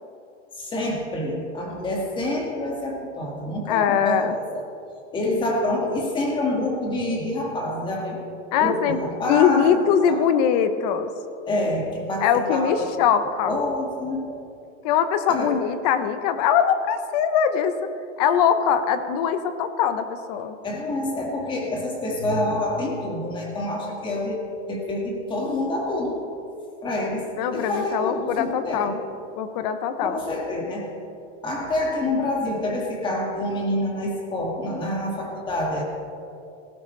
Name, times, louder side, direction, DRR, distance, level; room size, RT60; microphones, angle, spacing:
voice 1, 0.6-4.6 5.1-8.2 8.6-9.8 10.1-10.2 11.5-13.1 13.4-14.3 15.3-15.6 20.6-24.4 24.7-26.2 26.8-28.9 30.0-30.9 31.4-35.8, left 1 dB, 15° left, 0 dB, 1.8 m, -27 dB
voice 2, 3.7-4.3 8.5-9.0 9.3-11.1 12.2-13.6 14.8-17.8 18.2-20.6 27.4-29.0 29.4-30.2, left 8 dB, 35° left, 11 dB, 0.7 m, -22 dB
18.0 x 16.0 x 3.2 m, 2.6 s
supercardioid pair, 165°, 37 cm